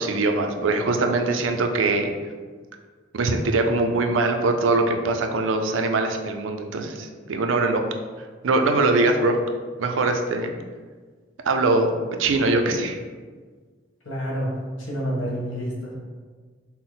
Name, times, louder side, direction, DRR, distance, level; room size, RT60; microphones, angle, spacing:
voice 1, 0.0-2.1 3.1-7.8 8.4-9.4 9.8-10.5 11.4-11.9 12.2-13.0, right 3 dB, 85° right, 4 dB, 0.5 m, -22 dB
voice 2, 14.0-14.5 14.8-16.0, equal, 85° left, -4 dB, 1.3 m, -28 dB
5.8 x 2.1 x 3.9 m, 1.5 s
head